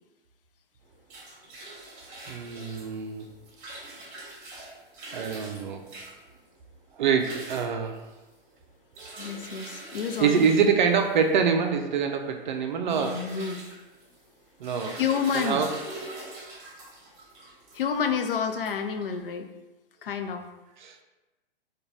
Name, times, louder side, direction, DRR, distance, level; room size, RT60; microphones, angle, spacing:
sound 1, 0.8-19.3, right 2 dB, 25° right, 1.0 m, -44 dB
voice 1, 2.3-3.3 5.1-5.9 7.0-8.0 9.0-9.1 10.2-13.3 14.6-15.0 15.3-15.7 20.8-21.0, right 6 dB, 55° right, 5 dB, 0.4 m, -25 dB
voice 2, 9.2-10.7 12.9-13.6 14.9-15.6 17.7-19.5 20.0-20.5, left 6 dB, 70° left, 7 dB, 0.4 m, -29 dB
3.7 x 2.2 x 3.0 m, 1.1 s
figure-of-eight pair, 105°, 29 cm